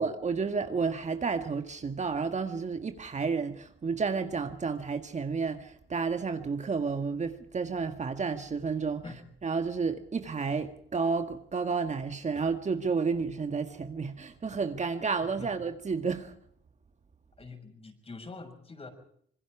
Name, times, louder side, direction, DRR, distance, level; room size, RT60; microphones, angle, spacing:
voice 1, 0.0-9.0 9.4-16.3, right 5 dB, 35° right, 1.8 m, -31 dB
voice 2, 17.4-18.9, left 3 dB, 30° left, 6.4 m, -44 dB
26.0 x 22.0 x 4.8 m
cardioid pair, 90°, 20 cm